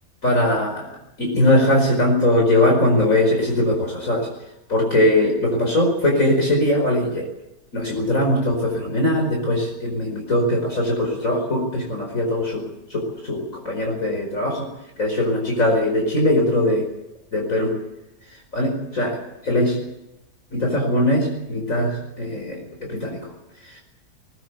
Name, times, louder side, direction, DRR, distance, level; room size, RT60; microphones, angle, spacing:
voice 1, 0.2-0.9 1.2-4.3 4.7-7.3 7.7-14.7 15.0-16.8 17.3-17.7 18.5-19.8 20.5-23.3 23.6-23.8, left 1 dB, 50° left, 1 dB, 5.2 m, -21 dB
20.5 x 20.0 x 8.3 m, 0.93 s
omnidirectional pair, 1.7 m